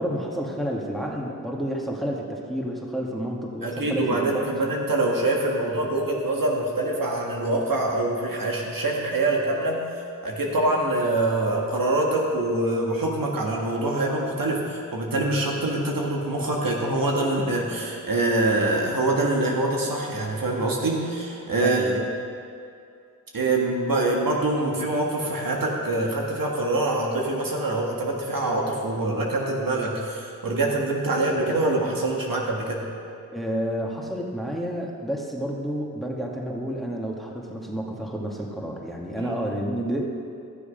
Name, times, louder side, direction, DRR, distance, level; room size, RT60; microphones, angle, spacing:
voice 1, 0.0-4.5 21.6-22.1 33.3-40.0, equal, ahead, -1 dB, 1.9 m, -30 dB
voice 2, 3.6-9.9 10.2-21.9 23.3-32.8 39.2-39.4, right 2 dB, 70° right, -1 dB, 1.8 m, -25 dB
14.0 x 7.0 x 5.2 m, 2.4 s
cardioid pair, 45°, 35 cm